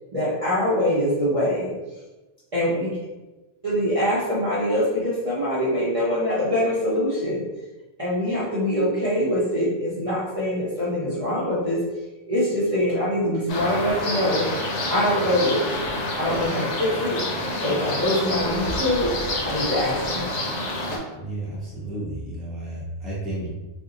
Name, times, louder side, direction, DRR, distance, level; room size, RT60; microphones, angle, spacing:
voice 1, 0.1-1.7 2.5-2.9 3.6-7.4 8.0-11.8 12.3-14.4 14.9-15.7 16.2-17.2 17.6-19.1 19.4-20.3, equal, 35° right, -9 dB, 0.6 m, -23 dB
sound 1, 13.5-21.0, left 1 dB, 90° left, 0.9 m, -28 dB
voice 2, 21.1-23.5, right 1 dB, ahead, -7 dB, 0.6 m, -32 dB
2.6 x 2.1 x 3.7 m, 1.1 s
omnidirectional pair, 1.2 m